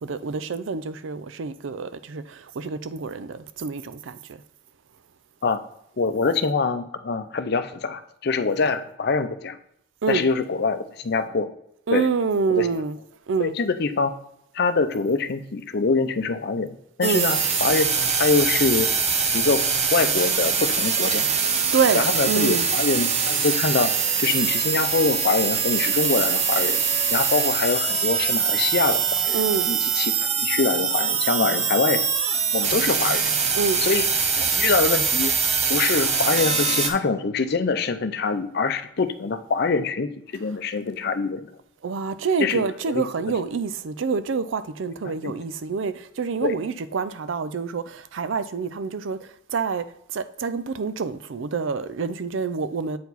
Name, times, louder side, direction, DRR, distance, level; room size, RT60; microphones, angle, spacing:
voice 1, 0.0-4.4 10.0-10.2 11.9-13.0 13.3-13.5 17.0-17.3 21.7-22.7 29.3-29.7 33.5-33.8 41.8-49.9 50.1-53.0, right 5 dB, 75° right, 0.5 m, -27 dB
voice 2, 6.0-9.6 10.1-11.5 11.9-12.1 12.6-12.7 13.4-14.1 14.5-18.9 19.3-19.6 19.9-21.3 21.9-26.8 27.1-29.4 29.7-32.0 32.5-33.3 33.8-34.0 34.4-35.3 35.7-41.5 42.4-43.1 45.1-45.3 46.4-46.5, left 4 dB, 55° left, 0.5 m, -24 dB
sound 1, 17.0-36.9, right 6 dB, 35° right, 0.7 m, -23 dB
8.4 x 4.6 x 4.0 m
head